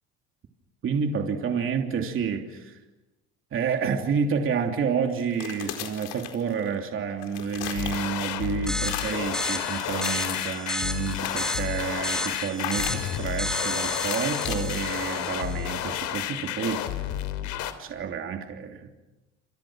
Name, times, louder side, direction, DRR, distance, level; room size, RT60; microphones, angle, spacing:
voice 1, 0.8-2.8 3.5-16.9 17.8-18.9, right 6 dB, 40° right, 3 dB, 3.0 m, -29 dB
sound 1, 5.2-6.8 7.1-8.4 8.7-9.3 9.7-10.6 11.0-11.8 12.6-13.4 13.8-15.5, left 12 dB, 85° left, 4.4 m, -37 dB
sound 2, 7.8-17.7, left 12 dB, 70° left, 3.3 m, -31 dB
sound 3, 8.7-15.8, left 1 dB, ahead, 5.0 m, -33 dB
28.5 x 28.0 x 6.3 m, 1.1 s
supercardioid pair, 100°, 31 cm